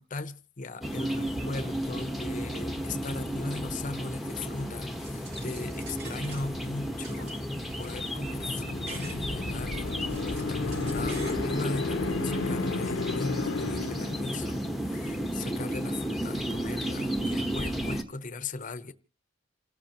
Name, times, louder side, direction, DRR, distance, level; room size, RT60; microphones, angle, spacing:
voice 1, 0.0-7.4 7.8-10.0 10.3-18.9, left 3 dB, 40° left, 0.8 m, -38 dB
sound 1, 0.8-18.0, equal, ahead, 1.1 m, -33 dB
sound 2, 5.0-6.7 7.0-9.2 9.7-11.4, right 4 dB, 55° right, 2.4 m, -47 dB
sound 3, 7.9-14.8, left 3 dB, 85° left, 0.8 m, -33 dB
28.5 x 14.5 x 3.0 m
head